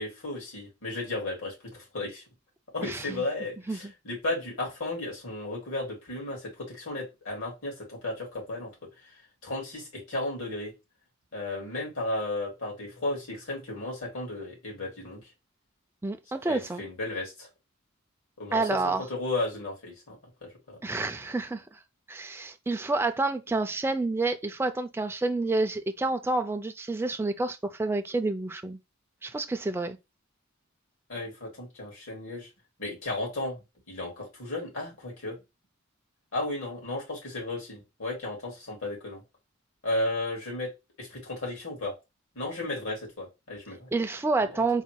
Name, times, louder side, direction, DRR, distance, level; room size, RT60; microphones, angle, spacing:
voice 1, 0.0-2.2 2.7-8.7 9.4-10.7 11.3-15.3 16.5-17.5 18.4-20.8 31.1-32.5 32.8-35.4 36.3-39.2 39.8-40.7 41.0-41.9 42.4-43.9 44.4-44.6, left 2 dB, 80° left, 2.3 m, -34 dB
voice 2, 2.8-3.2 3.7-3.8 16.0-16.8 18.5-19.0 20.8-21.8 22.1-28.8 29.2-30.0 43.9-44.8, right 3 dB, 10° right, 0.3 m, -29 dB
4.0 x 2.1 x 4.5 m
head